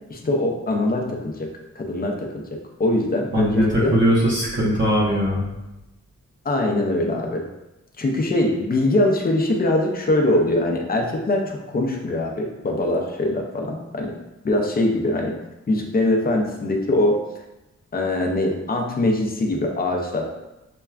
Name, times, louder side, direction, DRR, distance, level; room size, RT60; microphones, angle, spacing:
voice 1, 0.1-1.5 1.8-3.9 6.4-7.4 8.0-14.1 14.4-15.4 15.7-17.2 17.9-20.2, left 1 dB, 30° left, 1 dB, 0.5 m, -22 dB
voice 2, 3.3-5.4, equal, 40° right, -6 dB, 0.8 m, -20 dB
5.8 x 2.2 x 2.3 m, 0.98 s
wide cardioid pair, 155°, 30 cm